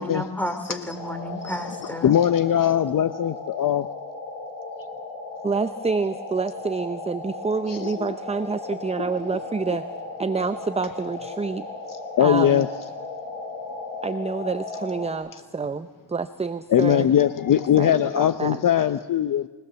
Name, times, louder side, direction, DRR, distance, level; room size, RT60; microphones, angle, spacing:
voice 1, 0.0-2.2, left 1 dB, 5° left, 8 dB, 3.1 m, -32 dB
sound 1, 0.9-15.1, left 3 dB, 70° left, 8.0 m, -36 dB
voice 2, 1.3-1.6 2.0-3.9 7.7-8.1 8.7-8.8 12.2-12.7 16.7-19.5, left 10 dB, 40° left, 12 dB, 0.8 m, -21 dB
voice 3, 5.4-9.9 10.2-11.7 12.2-12.7 14.0-17.1 17.8-18.6, right 4 dB, 15° right, 11 dB, 0.7 m, -28 dB
23.5 x 18.5 x 7.0 m, 1.2 s
cardioid pair, 90°, 50 cm